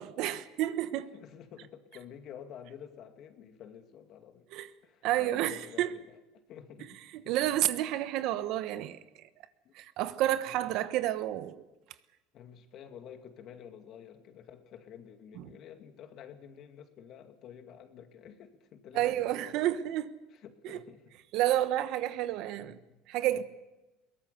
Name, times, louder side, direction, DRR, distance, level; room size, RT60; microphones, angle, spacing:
voice 1, 0.0-1.1 4.5-4.7 5.0-5.9 7.3-9.0 9.7-11.6 15.4-15.5 18.9-20.1 20.6-20.8 21.3-22.8 23.1-23.4, right 13 dB, 60° right, 1.1 m, -30 dB
voice 2, 1.0-4.5 4.8-6.2 6.5-7.0 7.2-7.3 9.6-9.7 10.5-10.7 12.3-19.7 20.3-21.2 22.6-23.0, left 8 dB, 50° left, 2.3 m, -50 dB
22.0 x 18.0 x 7.0 m
supercardioid pair, 115°, 0 cm